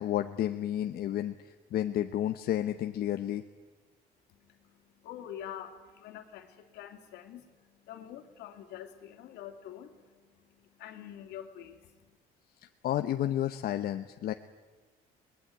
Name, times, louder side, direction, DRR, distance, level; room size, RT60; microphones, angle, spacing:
voice 1, 0.0-1.3 1.7-3.4 12.8-14.3, left 12 dB, 65° left, 7 dB, 0.9 m, -31 dB
voice 2, 4.3-12.2, left 10 dB, 85° left, 6 dB, 2.6 m, -47 dB
24.0 x 20.0 x 9.3 m, 1.3 s
cardioid pair, 110°, 17 cm